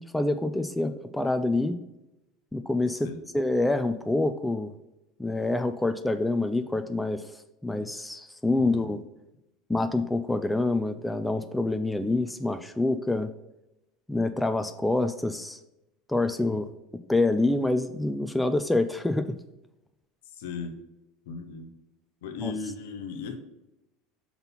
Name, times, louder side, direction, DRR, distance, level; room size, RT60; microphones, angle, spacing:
voice 1, 0.0-1.8 2.5-4.7 5.2-7.3 7.6-9.0 9.7-13.3 14.1-15.6 16.1-16.7 17.1-19.3 22.4-22.5, left 2 dB, 5° left, 8 dB, 0.5 m, -26 dB
voice 2, 20.2-20.8 21.3-21.7 22.2-23.4, left 4 dB, 70° left, 7 dB, 0.9 m, -36 dB
5.9 x 4.0 x 5.5 m, 0.91 s
figure-of-eight pair, 75°, 0 cm